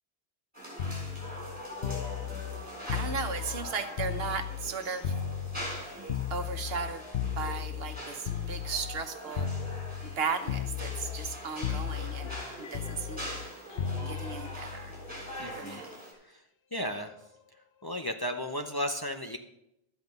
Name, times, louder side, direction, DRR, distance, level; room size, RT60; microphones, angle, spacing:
sound 1, 0.5-16.1, equal, 10° right, 4.0 m, -43 dB
sound 2, 0.8-4.7 5.0-9.1 9.4-10.2 10.5-11.4 11.6-15.6 16.8-17.1, left 9 dB, 70° left, 0.9 m, -35 dB
voice 1, 2.9-5.1 6.3-7.0 7.4-9.5 10.0-13.4 14.1-15.0 15.6-15.9, right 5 dB, 75° right, 8 dB, 1.1 m, -36 dB
voice 2, 15.4-15.8 16.2-16.4 16.7-17.1 17.8-19.4, equal, 25° left, 4 dB, 0.6 m, -34 dB
12.5 x 8.0 x 5.3 m, 0.83 s
omnidirectional pair, 1.0 m